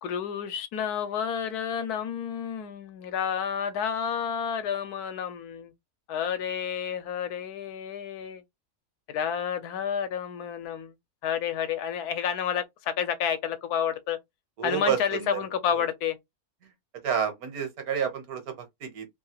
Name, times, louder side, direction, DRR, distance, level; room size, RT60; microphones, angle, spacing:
voice 1, 0.0-5.7 6.1-8.4 9.1-10.9 11.2-14.2 14.6-16.2, left 8 dB, 80° left, 1.1 m, -30 dB
voice 2, 14.6-15.4 15.7-15.9 17.0-19.1, right 8 dB, 75° right, 1.4 m, -30 dB
3.1 x 2.3 x 2.8 m
omnidirectional pair, 1.6 m